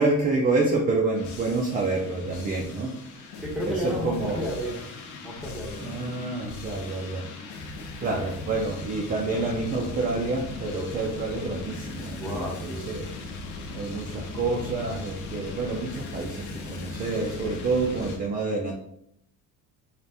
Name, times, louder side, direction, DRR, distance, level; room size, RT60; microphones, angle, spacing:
voice 1, 0.0-2.9 3.6-4.4 5.8-7.3 8.0-13.1 13.7-18.7, right 3 dB, 25° right, -1 dB, 0.4 m, -28 dB
sound 1, 1.1-18.2, left 3 dB, 55° left, 0.7 m, -38 dB
voice 2, 3.4-4.9 5.2-6.2 8.0-8.2 12.2-12.9, equal, ahead, -3 dB, 0.7 m, -33 dB
4.0 x 2.5 x 3.3 m, 0.70 s
cardioid pair, 165°, 37 cm